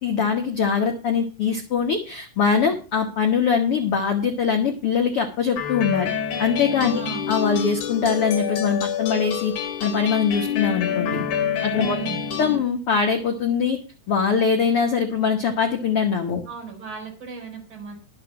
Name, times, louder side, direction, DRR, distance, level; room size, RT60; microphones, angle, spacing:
voice 1, 0.0-6.1 6.4-7.0 7.3-9.5 9.8-11.2 11.6-12.0 12.4-13.8 14.1-16.4, left 6 dB, 80° left, 4 dB, 1.2 m, -22 dB
sound 1, 5.6-12.6, left 8 dB, 55° left, 2.7 m, -27 dB
voice 2, 6.9-7.3 11.9-12.2 16.5-17.9, right 4 dB, 30° right, -1 dB, 4.8 m, -36 dB
11.0 x 8.1 x 6.0 m, 0.34 s
omnidirectional pair, 4.7 m